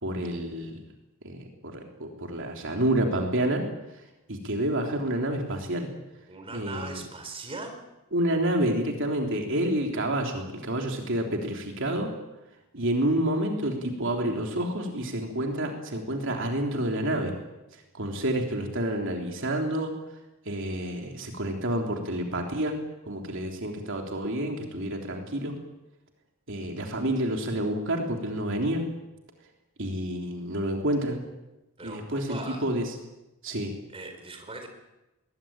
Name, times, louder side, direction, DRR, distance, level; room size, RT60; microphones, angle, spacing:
voice 1, 0.0-0.8 1.2-1.4 1.7-3.6 4.3-5.9 6.5-7.0 8.1-12.1 12.7-17.3 17.9-19.9 20.4-22.7 23.1-25.5 26.5-28.8 29.8-31.2 31.8-32.8 33.4-33.7, right 1 dB, 60° right, 2 dB, 3.4 m, -28 dB
voice 2, 6.3-7.8 31.8-32.7 33.9-34.7, right 2 dB, 25° right, 5 dB, 4.2 m, -39 dB
21.5 x 21.0 x 9.0 m, 0.98 s
head